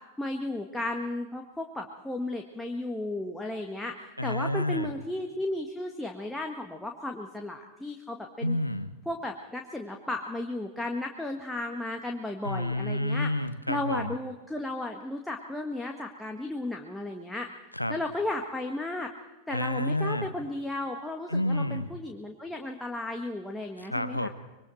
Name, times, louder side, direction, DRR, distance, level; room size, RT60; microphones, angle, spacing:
voice 1, 0.2-8.6 9.0-13.3 13.7-17.5 17.9-19.1 19.5-24.3, left 2 dB, 5° left, 2 dB, 1.5 m, -34 dB
voice 2, 4.2-4.9 8.4-8.9 12.4-14.1 17.7-18.0 19.5-20.3 21.3-21.9 23.8-24.3, left 1 dB, 85° left, 12 dB, 1.0 m, -29 dB
25.5 x 22.5 x 4.5 m, 1.1 s
figure-of-eight pair, 90°, 0 cm